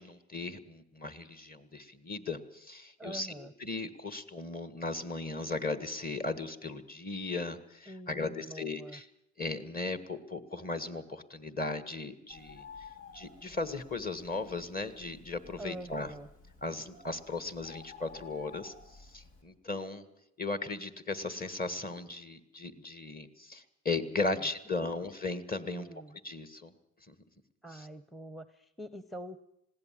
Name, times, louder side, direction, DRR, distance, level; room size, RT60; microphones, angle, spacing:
voice 1, 0.0-9.1 9.4-12.6 13.1-16.1 16.6-20.1 20.4-25.9 26.2-26.7 27.1-27.2 27.7-27.9, left 3 dB, 30° left, 11 dB, 1.8 m, -37 dB
voice 2, 3.0-3.5 7.9-9.0 15.6-16.3 24.8-25.0 25.7-26.2 27.6-29.4, right 1 dB, ahead, 12 dB, 0.8 m, -45 dB
Bird, 12.3-19.4, left 5 dB, 90° left, 4.7 m, -53 dB
20.5 x 16.5 x 7.6 m, 0.83 s
cardioid pair, 90°, 30 cm